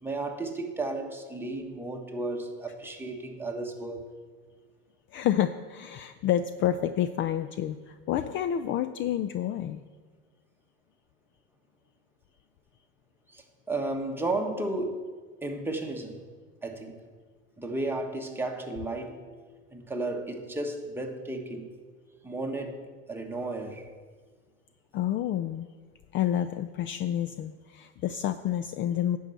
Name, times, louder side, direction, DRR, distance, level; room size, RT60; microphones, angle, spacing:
voice 1, 0.0-4.1 13.3-15.1 15.4-16.2 16.6-17.0 17.6-19.3 19.7-21.7 22.2-23.9, right 2 dB, 5° right, 2 dB, 1.3 m, -33 dB
voice 2, 5.1-9.8 24.9-25.7 26.1-29.2, left 11 dB, 40° left, 12 dB, 0.4 m, -29 dB
10.5 x 5.4 x 7.7 m, 1.5 s
supercardioid pair, 110°, 32 cm